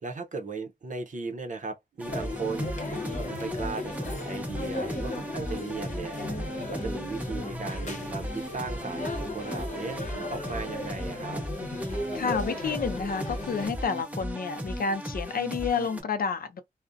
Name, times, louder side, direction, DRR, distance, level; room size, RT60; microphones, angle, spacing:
voice 1, 0.0-10.0 10.3-11.4, right 4 dB, 55° right, 0.6 m, -37 dB
sound 1, 2.0-13.7, left 2 dB, 50° left, 0.8 m, -36 dB
sound 2, 2.0-16.0, equal, 10° right, 0.7 m, -37 dB
voice 2, 12.1-16.6, left 5 dB, 70° left, 0.4 m, -30 dB
2.5 x 2.0 x 2.4 m
wide cardioid pair, 75°, 15 cm